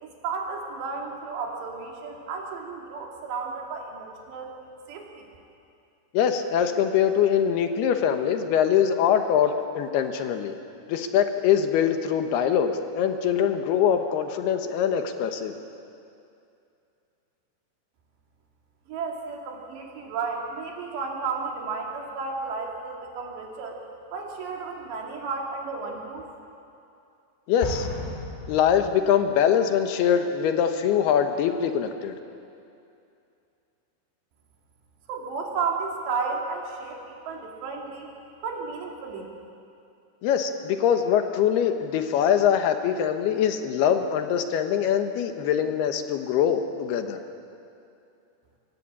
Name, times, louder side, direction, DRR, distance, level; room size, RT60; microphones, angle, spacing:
voice 1, 0.0-4.5 4.9-5.3 18.9-23.8 24.1-26.2 35.1-38.1 38.4-39.3, right 4 dB, 70° right, 0 dB, 4.6 m, -33 dB
voice 2, 6.1-10.5 10.9-15.5 27.5-27.9 28.5-32.1 40.2-47.2, left 8 dB, 70° left, 7 dB, 3.0 m, -23 dB
Explosion, 27.6-29.4, left 1 dB, 85° left, 6.2 m, -35 dB
24.0 x 19.5 x 8.6 m, 2.6 s
omnidirectional pair, 5.2 m